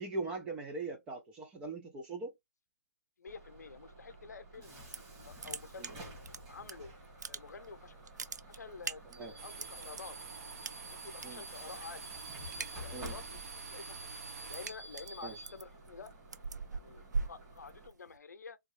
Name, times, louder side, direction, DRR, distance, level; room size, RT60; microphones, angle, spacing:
voice 1, 0.0-2.3 9.2-9.3 11.2-11.4 12.9-13.1 15.2-15.3, right 3 dB, 10° right, 0.3 m, -40 dB
voice 2, 3.2-4.8 5.2-6.1 6.5-6.9 7.3-8.0 8.5-10.4 10.8-12.1 12.5-14.1 14.5-16.1 16.7-18.6, left 5 dB, 70° left, 0.7 m, -49 dB
Bus / Alarm, 3.3-17.9, right 1 dB, 25° right, 1.7 m, -50 dB
sound 1, 4.7-5.1 5.4-6.7 7.0-7.7 8.0-10.0 10.6-11.3 11.6-11.9 12.2-13.3 13.7-18.2, right 4 dB, 75° right, 0.4 m, -41 dB
sound 2, 9.4-14.7, right 5 dB, 55° right, 0.9 m, -47 dB
3.4 x 2.6 x 2.9 m
figure-of-eight pair, 145°, 9 cm